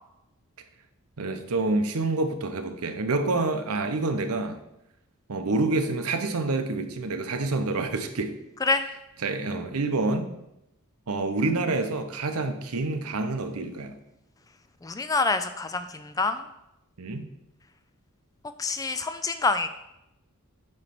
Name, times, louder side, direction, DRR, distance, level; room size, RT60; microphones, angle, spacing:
voice 1, 1.2-4.6 5.3-8.3 9.2-10.3 11.1-13.9 17.0-17.3, right 3 dB, 80° right, 7 dB, 0.8 m, -27 dB
voice 2, 14.8-16.4 18.6-19.7, left 3 dB, 15° left, 10 dB, 0.3 m, -26 dB
8.8 x 3.2 x 5.9 m, 0.86 s
head